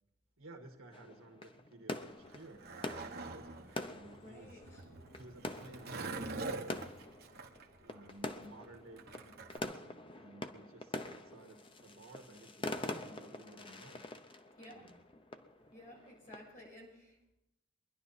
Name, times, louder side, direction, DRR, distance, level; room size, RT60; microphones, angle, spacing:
voice 1, 0.4-4.6 5.2-7.1 7.8-14.1 14.7-15.0, right 2 dB, 75° right, 3 dB, 1.8 m, -55 dB
sound 1, 0.9-16.7, left 2 dB, 25° left, 0.7 m, -45 dB
Skateboard, 2.1-9.6, right 3 dB, 45° right, 1.3 m, -45 dB
sound 2, 3.3-8.2, equal, 60° left, 2.1 m, -67 dB
voice 2, 4.2-4.9 14.6-14.9 15.7-17.3, left 1 dB, 40° left, -3 dB, 6.9 m, -54 dB
23.5 x 11.0 x 4.2 m, 0.90 s
head